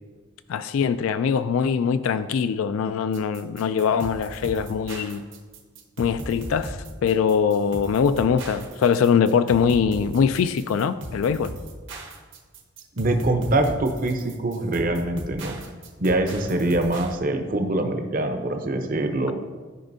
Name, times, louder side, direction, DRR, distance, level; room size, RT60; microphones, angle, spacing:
voice 1, 0.5-5.2 6.0-11.5, left 6 dB, 80° left, 0.3 m, -22 dB
sound 1, 3.1-17.1, right 1 dB, 65° right, 1.1 m, -38 dB
voice 2, 13.0-15.6 16.0-19.3, right 2 dB, 40° right, 0.7 m, -24 dB
13.5 x 5.1 x 2.7 m
head